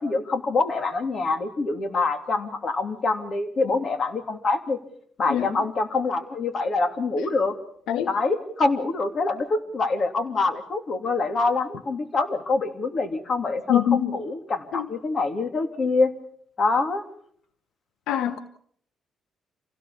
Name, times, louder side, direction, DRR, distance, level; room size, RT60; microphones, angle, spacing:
voice 1, 0.0-4.8 5.2-7.5 8.1-16.1 16.6-17.0, left 3 dB, 50° left, 2.9 m, -25 dB
voice 2, 13.7-14.1 14.7-14.9 18.1-18.4, left 10 dB, 90° left, 1.0 m, -23 dB
27.0 x 17.0 x 7.1 m
cardioid pair, 90°, 0 cm